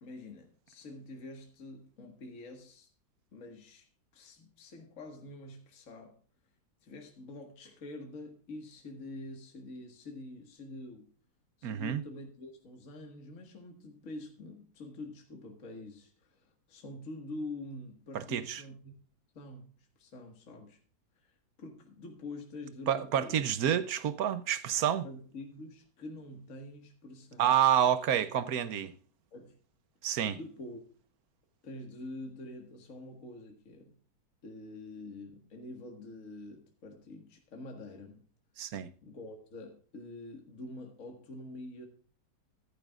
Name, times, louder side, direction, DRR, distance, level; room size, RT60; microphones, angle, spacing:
voice 1, 0.0-2.9 3.3-6.2 6.8-11.1 11.6-18.9 19.3-20.8 21.2-21.3 21.6-23.5 25.0-27.5 29.3-29.6 30.3-30.8 31.6-34.0 34.4-38.2 39.0-41.9, left 2 dB, 45° left, 2.0 m, -46 dB
voice 2, 11.6-12.0 18.1-18.6 22.9-25.0 27.4-28.9 30.0-30.4 38.6-38.9, right 10 dB, 60° right, 1.1 m, -28 dB
14.0 x 11.5 x 2.4 m
omnidirectional pair, 2.0 m